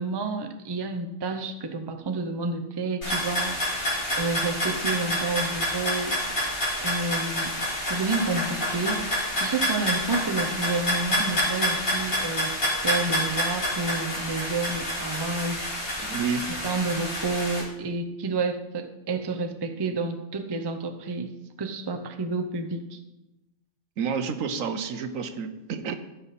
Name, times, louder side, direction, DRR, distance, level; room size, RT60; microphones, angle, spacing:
voice 1, 0.0-3.9 4.2-6.5 6.8-7.5 7.9-16.1 16.6-21.3 21.6-23.0, right 3 dB, 25° right, 6 dB, 0.5 m, -30 dB
sound 1, 3.0-17.6, left 1 dB, 85° left, 4.1 m, -28 dB
voice 2, 16.0-16.5 24.0-26.0, right 6 dB, 70° right, 10 dB, 1.2 m, -29 dB
15.0 x 5.9 x 4.2 m, 0.99 s
omnidirectional pair, 1.4 m